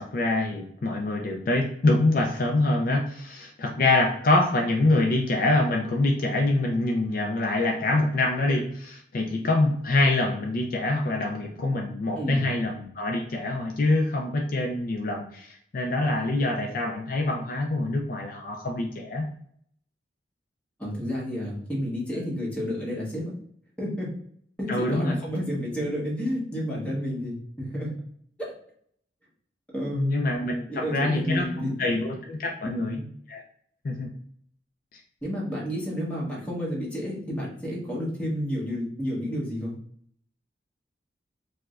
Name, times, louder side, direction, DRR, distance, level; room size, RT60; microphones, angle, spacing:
voice 1, 0.0-19.3 24.7-25.1 29.9-33.0 33.3-33.4 33.8-34.1, left 2 dB, 50° left, 1 dB, 0.4 m, -25 dB
voice 2, 12.2-12.5 20.8-23.3 23.8-24.1 24.6-28.0 28.4-28.5 29.7-30.2 30.7-32.0 32.6-33.1 35.2-39.7, equal, 5° left, -5 dB, 1.0 m, -31 dB
4.5 x 2.1 x 2.4 m, 0.65 s
head